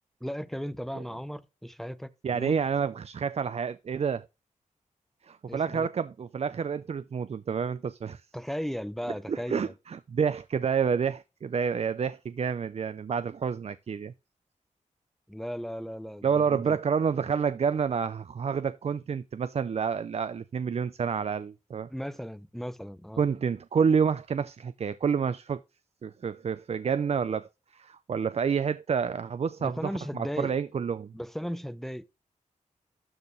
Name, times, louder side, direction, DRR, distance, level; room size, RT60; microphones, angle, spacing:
voice 1, 0.2-2.6 5.5-5.9 8.3-9.7 15.3-16.8 21.9-23.2 29.6-30.5 31.1-32.1, equal, ahead, 0.6 m, -36 dB
voice 2, 2.2-4.3 5.2-8.2 9.3-14.1 16.2-21.9 23.2-25.6 26.0-31.1, right 6 dB, 50° right, 0.5 m, -29 dB
12.0 x 4.4 x 3.1 m
wide cardioid pair, 120°, 13 cm